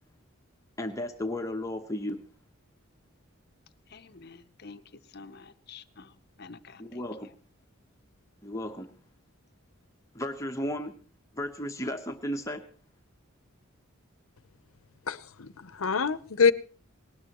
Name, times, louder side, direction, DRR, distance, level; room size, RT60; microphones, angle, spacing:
voice 1, 0.8-2.2 6.8-7.3 8.4-8.9 10.1-11.0 11.4-12.7, left 1 dB, 15° left, 1.0 m, -34 dB
voice 2, 3.9-4.8 5.1-7.0, left 4 dB, 50° left, 0.8 m, -49 dB
voice 3, 15.1-16.5, left 5 dB, 80° left, 0.8 m, -25 dB
19.0 x 19.0 x 3.0 m
head